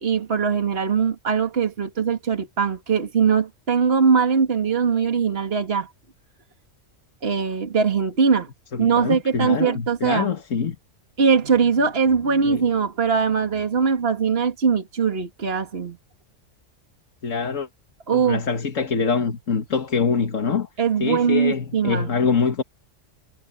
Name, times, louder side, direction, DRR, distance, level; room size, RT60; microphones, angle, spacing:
voice 1, 0.0-5.9 7.2-8.5 8.8-10.3 11.2-16.0 18.1-18.4 20.8-22.1, right 6 dB, 50° right, 2.1 m, -21 dB
voice 2, 8.7-10.8 12.4-12.6 17.2-17.7 18.1-20.7 21.0-22.6, left 5 dB, 80° left, 2.0 m, -24 dB
omnidirectional pair, 1.3 m